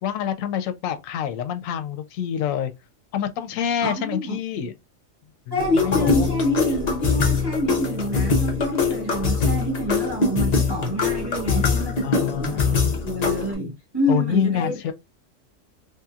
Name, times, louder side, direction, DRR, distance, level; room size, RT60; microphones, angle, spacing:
voice 1, 0.0-2.7 3.1-4.7 5.5-6.3 12.0-13.0 14.1-14.9, left 9 dB, 85° left, 1.0 m, -27 dB
voice 2, 3.8-4.4 5.5-14.8, left 1 dB, 20° right, 1.4 m, -26 dB
sound 1, 5.6-13.5, left 4 dB, 40° left, 0.7 m, -23 dB
3.2 x 2.9 x 2.3 m
omnidirectional pair, 1.3 m